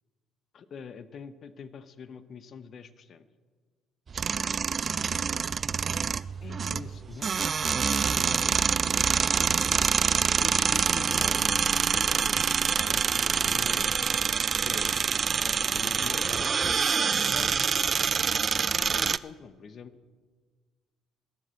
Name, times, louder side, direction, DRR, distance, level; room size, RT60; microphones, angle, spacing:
voice 1, 0.5-3.3 6.4-7.4 8.1-9.1 10.4-14.1 14.6-15.0 15.4-19.9, left 6 dB, 50° left, 14 dB, 0.8 m, -45 dB
sound 1, 4.1-19.2, right 6 dB, 40° right, 0.4 m, -26 dB
voice 2, 4.9-5.8 6.5-7.3 13.3-13.7, equal, 15° left, 4 dB, 4.1 m, -52 dB
15.5 x 7.4 x 8.3 m, 1.5 s
hypercardioid pair, 55°, 0 cm